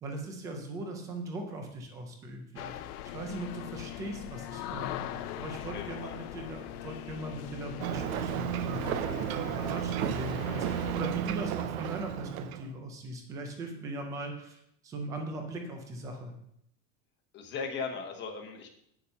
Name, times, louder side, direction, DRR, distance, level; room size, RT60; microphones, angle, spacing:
voice 1, 0.0-2.7 3.1-16.3, right 1 dB, 10° right, 3 dB, 0.3 m, -39 dB
sound 1, 2.6-10.9, left 13 dB, 85° left, 0.8 m, -41 dB
voice 2, 5.6-6.2 17.3-18.7, left 5 dB, 25° left, 4 dB, 1.0 m, -38 dB
Ocean, 7.8-12.7, right 11 dB, 65° right, 0.7 m, -33 dB
9.0 x 6.9 x 5.3 m, 0.71 s
supercardioid pair, 175°, 45 cm